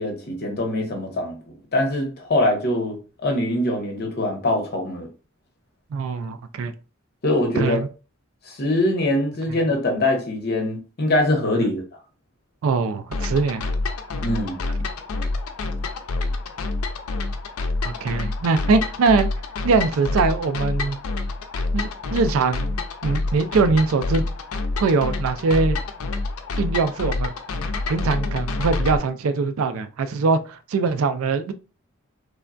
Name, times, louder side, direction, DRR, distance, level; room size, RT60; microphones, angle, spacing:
voice 1, 0.0-1.4 1.7-5.1 7.2-7.8 8.5-11.8 14.2-14.7, left 1 dB, 50° left, 0.9 m, -23 dB
voice 2, 5.9-6.7 7.6-7.9 9.5-9.6 12.6-13.7 17.8-19.3 19.6-21.0 21.7-22.7 23.0-24.2 24.8-25.8 26.6-27.3 27.9-31.5, right 4 dB, 70° right, 0.4 m, -22 dB
sound 1, 13.1-29.0, left 3 dB, 90° left, 0.4 m, -27 dB
3.3 x 2.2 x 2.4 m
head